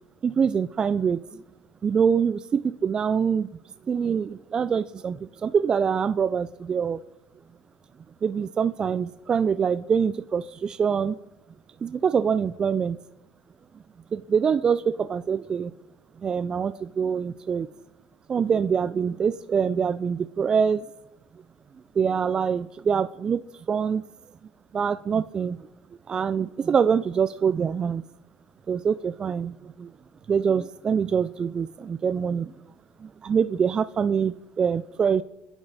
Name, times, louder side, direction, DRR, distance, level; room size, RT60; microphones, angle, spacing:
voice 1, 0.2-1.2 1.8-3.5 3.9-7.0 8.2-11.1 11.8-13.0 14.1-15.7 16.2-17.7 18.3-20.8 22.0-23.4 23.7-24.0 24.7-25.6 26.1-28.0 28.7-29.9 30.3-32.5 33.2-35.2, right 6 dB, 30° right, 0.4 m, -24 dB
24.0 x 10.5 x 4.1 m
supercardioid pair, 105°, 3 cm